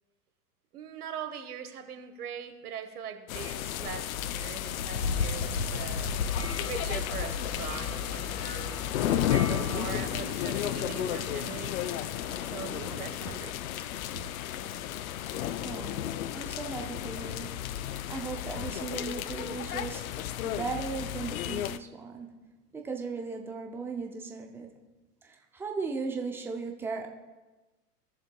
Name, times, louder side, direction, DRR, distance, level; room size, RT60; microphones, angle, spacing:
voice 1, 0.7-6.1 6.6-8.8 9.2-11.7 12.5-13.5, right 8 dB, 70° right, 7 dB, 1.3 m, -41 dB
sound 1, 3.3-21.8, left 11 dB, 60° left, 0.5 m, -33 dB
sound 2, 4.8-10.0, left 4 dB, 90° left, 1.2 m, -35 dB
sound 3, 6.3-13.5 14.4-15.2 18.4-19.2 19.7-22.1, right 4 dB, 25° right, 2.6 m, -53 dB
voice 2, 15.6-16.1 16.3-17.6 18.1-22.4 22.7-24.8 25.2-27.1, right 4 dB, 5° right, 2 dB, 0.4 m, -37 dB
18.0 x 6.9 x 2.3 m, 1.2 s
hypercardioid pair, 105°, 47 cm